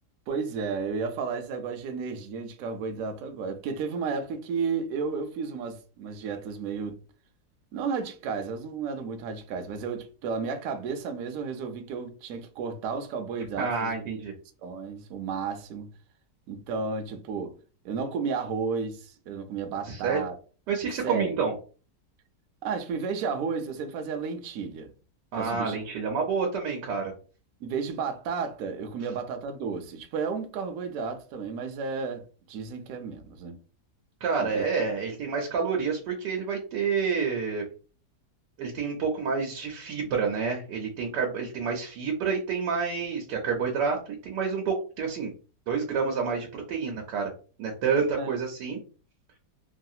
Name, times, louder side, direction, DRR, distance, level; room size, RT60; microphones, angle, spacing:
voice 1, 0.3-7.0 7.7-13.9 14.6-15.9 16.5-17.6 17.8-20.3 21.0-21.3 22.6-24.9 25.3-25.8 27.6-33.6 34.4-34.7 48.2-48.3, right 5 dB, 70° right, 0.9 m, -32 dB
voice 2, 13.6-14.3 19.8-20.2 20.7-21.5 25.3-27.1 34.2-37.6 38.6-45.3 45.7-47.3 47.6-48.8, right 5 dB, 90° right, 1.3 m, -28 dB
3.1 x 2.4 x 2.7 m
omnidirectional pair, 1.8 m